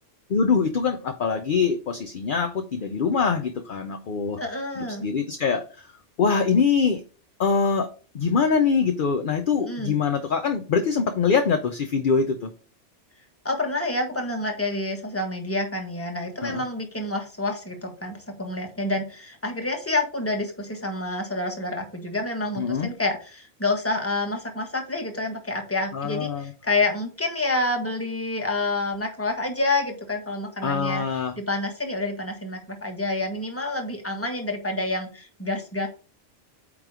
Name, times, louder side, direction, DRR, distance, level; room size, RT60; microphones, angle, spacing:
voice 1, 0.3-4.4 4.8-5.9 6.2-7.0 7.4-12.5 16.4-16.6 22.6-22.9 25.9-26.5 30.6-31.3, left 5 dB, 55° left, 7 dB, 0.7 m, -24 dB
voice 2, 4.4-5.1 9.6-10.0 13.4-31.0 31.4-35.9, left 2 dB, 10° left, 3 dB, 1.4 m, -28 dB
8.6 x 3.2 x 4.8 m, 0.37 s
omnidirectional pair, 1.2 m